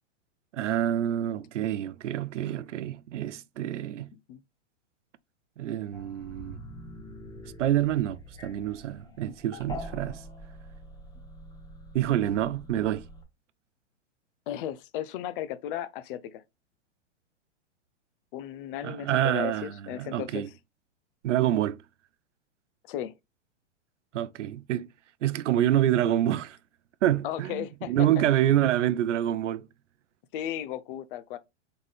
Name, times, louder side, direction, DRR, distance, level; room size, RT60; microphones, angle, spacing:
voice 1, 0.5-4.1 5.6-6.6 7.6-10.2 11.9-13.0 18.8-20.5 21.2-21.8 24.1-24.9 25.2-26.6 27.0-29.7, right 12 dB, 85° right, 0.5 m, -27 dB
sound 1, 5.9-13.2, equal, 10° left, 0.9 m, -44 dB
voice 2, 14.5-16.4 18.3-20.5 22.9-23.1 27.2-27.9 30.3-31.4, left 11 dB, 50° left, 0.5 m, -35 dB
3.9 x 3.7 x 3.2 m
hypercardioid pair, 120°, 35 cm